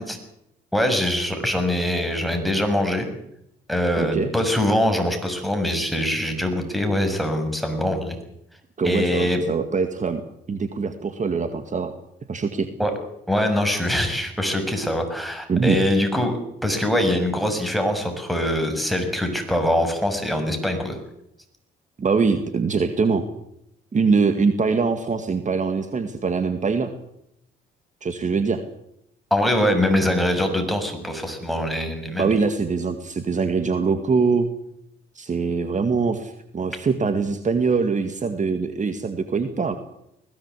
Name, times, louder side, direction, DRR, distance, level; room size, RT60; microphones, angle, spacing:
voice 1, 0.7-3.1 3.7-8.2 8.8-9.4 12.8-12.9 13.3-16.3 16.6-21.0 29.3-32.3, left 1 dB, ahead, 5 dB, 6.7 m, -23 dB
voice 2, 4.0-4.3 8.8-10.2 10.5-11.9 12.3-12.7 15.5-15.8 22.0-23.3 23.9-26.9 28.0-28.6 32.2-34.5 35.2-39.7, right 5 dB, 40° right, 8 dB, 2.1 m, -23 dB
21.5 x 17.5 x 8.4 m, 0.77 s
cardioid pair, 90°, 20 cm